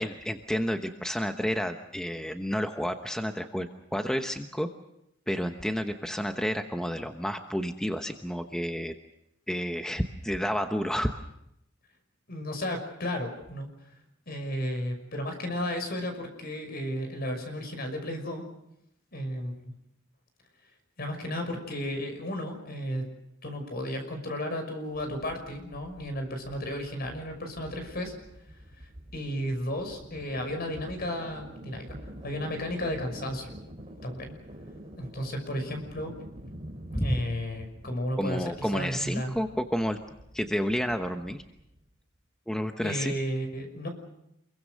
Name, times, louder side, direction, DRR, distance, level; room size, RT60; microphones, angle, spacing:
voice 1, 0.0-4.7 5.3-8.9 9.5-11.1 36.9-37.2 38.2-40.0 40.3-41.4 42.5-43.1, equal, 5° left, 6 dB, 1.0 m, -30 dB
voice 2, 12.3-13.7 14.3-18.4 19.1-19.5 21.0-23.0 23.4-28.1 29.1-31.9 32.2-33.5 34.0-34.3 35.0-36.1 36.9-39.3 42.8-43.9, equal, 55° left, 6 dB, 5.9 m, -33 dB
sound 1, 24.9-41.9, equal, 30° right, 4.8 m, -47 dB
28.0 x 22.5 x 6.5 m, 0.81 s
head